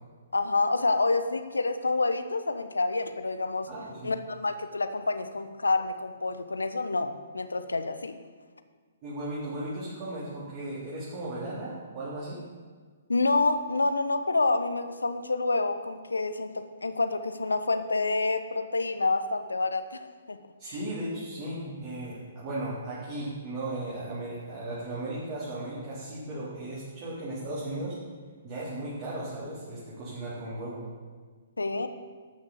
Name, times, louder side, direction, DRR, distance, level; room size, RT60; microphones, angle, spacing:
voice 1, 0.3-3.7 4.0-8.1 13.1-20.4 20.6-20.7 31.6-31.9, left 3 dB, 80° left, 9 dB, 1.0 m, -28 dB
voice 2, 3.7-4.1 9.0-12.4 20.6-28.0 28.4-30.8, right 1 dB, 35° right, -9 dB, 3.7 m, -36 dB
12.5 x 6.5 x 7.2 m, 1.5 s
figure-of-eight pair, 125°, 0 cm